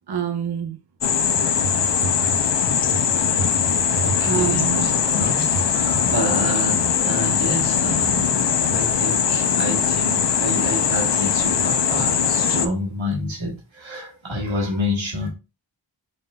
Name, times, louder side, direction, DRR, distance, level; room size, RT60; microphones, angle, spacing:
voice 1, 0.1-0.8 1.6-2.1 2.9-3.5 3.9-4.9, right 6 dB, 60° right, 0.6 m, -27 dB
sound 1, 1.0-12.7, left 7 dB, 65° left, 0.5 m, -21 dB
voice 2, 4.0-15.3, left 1 dB, 75° right, 1.5 m, -28 dB
5.5 x 3.1 x 2.2 m
wide cardioid pair, 50°, 46 cm